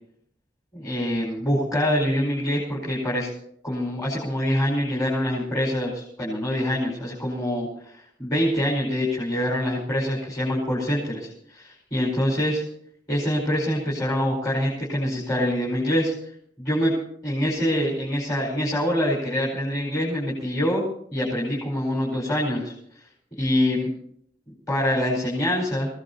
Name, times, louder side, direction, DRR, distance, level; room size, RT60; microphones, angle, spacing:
voice 1, 0.7-3.3 3.6-12.6 13.1-16.1 16.6-16.9 17.2-20.8 21.1-22.7 23.4-23.9 24.7-25.9, equal, 20° left, -5 dB, 4.9 m, -25 dB
26.5 x 17.0 x 2.9 m, 0.66 s
head